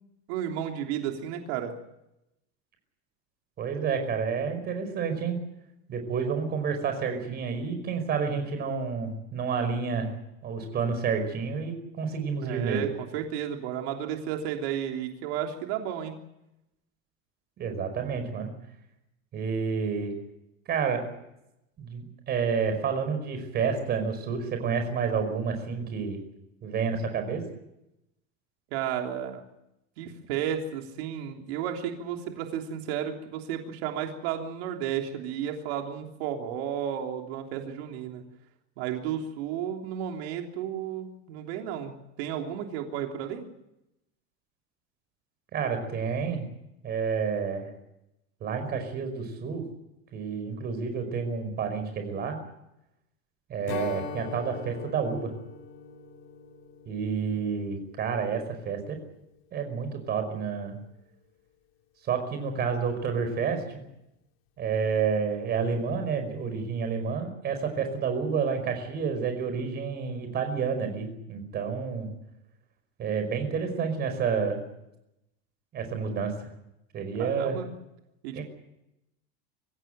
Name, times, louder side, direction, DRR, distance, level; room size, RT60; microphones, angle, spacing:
voice 1, 0.3-1.7 12.4-16.2 28.7-29.4 30.0-38.2 38.8-43.4 77.2-77.7 78.2-78.4, right 9 dB, 80° right, 3 dB, 3.3 m, -33 dB
voice 2, 3.6-5.4 5.9-10.1 10.4-12.9 17.6-18.5 19.3-20.2 20.7-21.0 21.8-26.2 26.6-27.4 45.5-46.5 46.8-47.7 48.4-49.7 50.1-52.4 53.5-55.3 56.9-59.0 59.5-60.8 62.0-63.8 64.6-72.1 73.0-74.6 75.7-76.5 76.9-77.6 78.3-78.4, right 6 dB, 30° right, 7 dB, 5.2 m, -29 dB
Strum, 53.7-59.1, left 7 dB, 80° left, 3.2 m, -42 dB
25.0 x 16.0 x 9.0 m, 0.88 s
cardioid pair, 175°, 31 cm